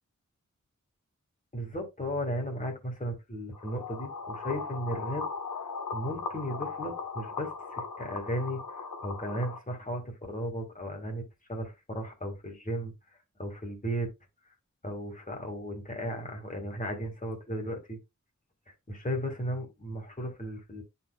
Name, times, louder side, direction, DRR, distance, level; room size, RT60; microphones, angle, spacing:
voice 1, 1.5-5.3 5.9-11.2 11.5-12.9 13.4-14.1 14.8-18.0 18.9-20.8, equal, 25° left, 2.0 m, -35 dB
sound 1, 3.5-9.6, left 4 dB, 90° left, 1.1 m, -38 dB
11.0 x 4.4 x 2.3 m
wide cardioid pair, 65°, 30 cm